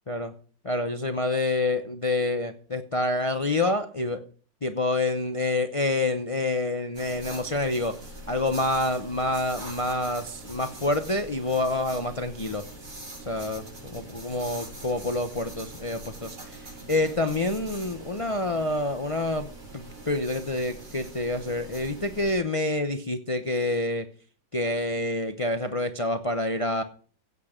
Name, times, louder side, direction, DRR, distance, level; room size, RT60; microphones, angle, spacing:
voice 1, 0.6-4.2 4.6-8.0 8.3-12.6 13.3-24.1 24.5-26.8, left 2 dB, 60° left, 7 dB, 0.3 m, -27 dB
sound 1, 6.9-22.3, right 2 dB, 45° right, 5.8 m, -43 dB
16.0 x 8.5 x 5.1 m, 0.43 s
omnidirectional pair, 2.1 m